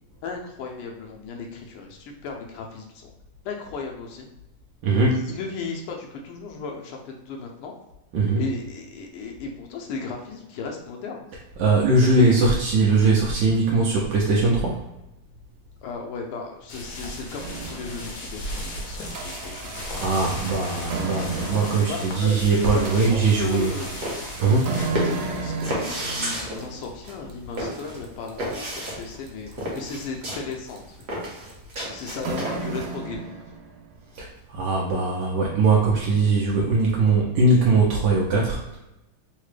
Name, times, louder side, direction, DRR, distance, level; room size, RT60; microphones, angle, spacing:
voice 1, 0.2-3.1 3.4-4.3 5.1-7.8 8.4-11.3 12.1-12.5 15.8-19.0 19.2-19.7 20.0-20.3 21.9-23.9 25.0-31.4 31.9-33.4, left 4 dB, 80° left, 1 dB, 1.5 m, -36 dB
voice 2, 4.8-5.2 8.1-8.4 11.6-14.8 20.0-23.7 24.4-24.8 34.1-38.8, right 3 dB, 75° right, -3 dB, 1.1 m, -20 dB
sound 1, 16.7-24.9, left 1 dB, 65° left, 1.0 m, -36 dB
sound 2, 17.4-18.3 18.8-33.9, right 3 dB, 90° right, 1.6 m, -34 dB
sound 3, 23.6-32.9, equal, 50° right, 0.8 m, -32 dB
3.9 x 2.1 x 3.2 m, 0.93 s
omnidirectional pair, 2.4 m